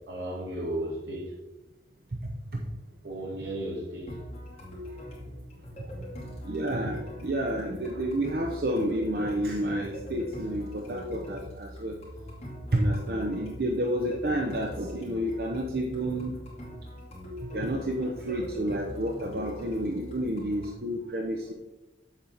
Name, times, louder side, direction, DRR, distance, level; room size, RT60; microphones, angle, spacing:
voice 1, 0.1-1.3 3.0-4.2 4.9-5.2, right 1 dB, 90° right, -3 dB, 2.4 m, -35 dB
sound 1, 4.1-20.8, left 1 dB, 35° left, 2.4 m, -42 dB
voice 2, 6.4-12.0 12.7-16.4 17.5-21.5, right 1 dB, 60° right, 1 dB, 0.7 m, -30 dB
7.4 x 7.3 x 3.9 m, 1.0 s
head